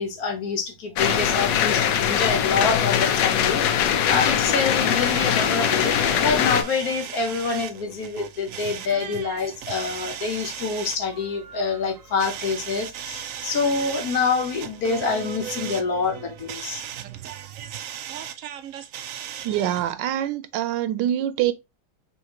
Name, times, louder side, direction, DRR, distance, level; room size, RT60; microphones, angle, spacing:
voice 1, 0.0-16.8, left 4 dB, 60° left, 1.3 m, -26 dB
sound 1, 1.0-6.6, left 9 dB, 85° left, 1.3 m, -22 dB
sound 2, 4.0-19.9, right 9 dB, 70° right, 0.8 m, -37 dB
voice 2, 19.4-21.5, right 11 dB, 90° right, 1.3 m, -25 dB
5.6 x 2.8 x 2.9 m
omnidirectional pair, 1.9 m